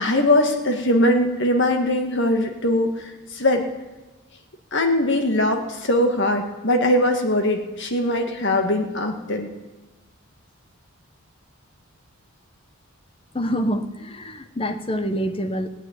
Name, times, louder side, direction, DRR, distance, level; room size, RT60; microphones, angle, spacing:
voice 1, 0.0-3.6 4.7-9.5, left 1 dB, 55° left, 5 dB, 1.8 m, -21 dB
voice 2, 13.3-15.7, equal, 25° left, 9 dB, 0.8 m, -26 dB
16.0 x 9.2 x 9.2 m, 1.1 s
head